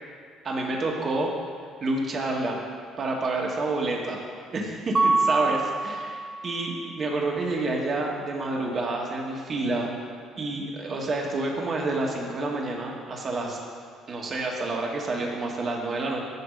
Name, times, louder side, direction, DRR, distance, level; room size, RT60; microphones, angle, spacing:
voice 1, 0.4-1.3 1.8-2.6 3.0-4.2 4.5-6.2 6.4-9.9 10.4-13.6 14.1-16.2, right 2 dB, 45° right, -1 dB, 1.6 m, -28 dB
Mallet percussion, 4.9-6.8, right 3 dB, 30° right, 0.3 m, -25 dB
9.7 x 3.5 x 6.3 m, 2.1 s
hypercardioid pair, 55°, 0 cm